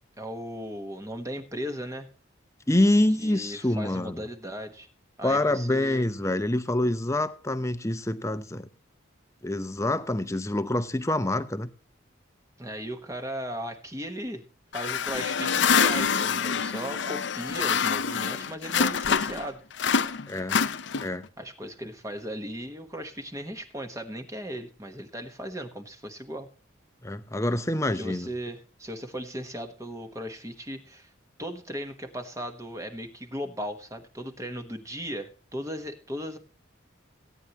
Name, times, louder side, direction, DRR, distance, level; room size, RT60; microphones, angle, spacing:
voice 1, 0.2-2.1 3.2-4.9 5.2-6.1 12.6-14.4 14.7-19.6 21.4-26.5 27.9-31.1 31.4-36.4, equal, 15° right, 1.2 m, -37 dB
voice 2, 2.7-4.2 5.2-8.7 9.4-11.7 20.3-20.6 21.0-21.2 27.0-28.3, left 1 dB, 15° left, 0.7 m, -26 dB
sound 1, 14.7-19.5 19.8-21.3, left 6 dB, 65° left, 0.6 m, -26 dB
17.5 x 9.6 x 3.0 m
head